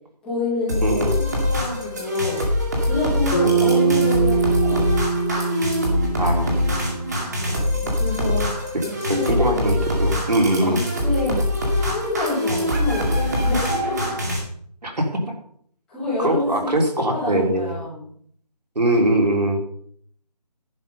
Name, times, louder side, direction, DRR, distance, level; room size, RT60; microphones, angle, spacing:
voice 1, 0.2-2.4 2.8-4.8 7.5-8.5 8.8-9.8 10.6-14.1 15.9-16.7 17.1-18.1, left 2 dB, 5° left, -12 dB, 2.2 m, -28 dB
sound 1, 0.7-14.4, left 1 dB, 25° right, 2.3 m, -24 dB
voice 2, 0.8-1.2 3.3-3.9 6.2-6.5 9.1-10.8 14.8-15.1 16.2-17.8 18.8-19.6, right 1 dB, 75° right, 2 dB, 3.6 m, -22 dB
Bass guitar, 3.3-7.7, right 5 dB, 35° left, 4.5 m, -23 dB
11.0 x 8.8 x 5.3 m, 0.62 s
figure-of-eight pair, 180°, 21 cm